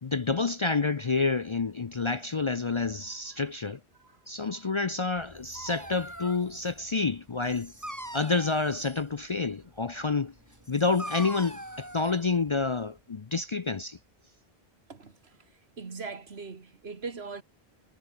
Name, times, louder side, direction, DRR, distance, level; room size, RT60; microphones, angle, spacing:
voice 1, 0.0-3.8 4.3-7.7 8.1-10.3 10.7-14.0, left 4 dB, 35° left, 0.5 m, -28 dB
Dog, 5.2-13.0, right 1 dB, 15° right, 3.9 m, -43 dB
voice 2, 14.9-15.4 15.8-17.4, right 4 dB, 80° right, 2.1 m, -41 dB
omnidirectional pair, 1.1 m